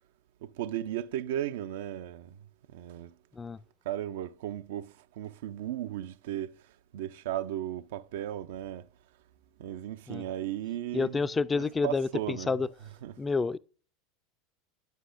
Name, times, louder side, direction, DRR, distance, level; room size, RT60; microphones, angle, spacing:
voice 1, 0.4-2.4 2.7-3.1 3.9-6.5 6.9-8.9 9.6-11.2 11.5-12.5 13.0-13.1, right 12 dB, 65° right, 0.4 m, -35 dB
voice 2, 10.9-12.7 13.2-13.6, left 4 dB, 20° left, 0.4 m, -29 dB
9.4 x 8.0 x 2.5 m
figure-of-eight pair, 80°, 0 cm